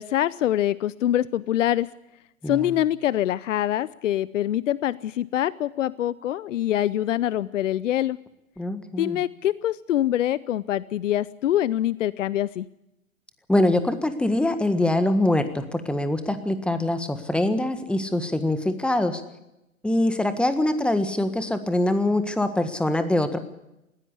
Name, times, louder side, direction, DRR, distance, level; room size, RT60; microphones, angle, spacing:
voice 1, 0.0-1.9 2.5-8.2 9.0-12.7, left 12 dB, 65° left, 20 dB, 0.7 m, -24 dB
voice 2, 2.4-2.7 8.6-9.2 13.5-19.2 19.8-23.4, left 1 dB, ahead, 9 dB, 1.5 m, -24 dB
20.0 x 16.0 x 8.3 m, 0.90 s
figure-of-eight pair, 115°, 41 cm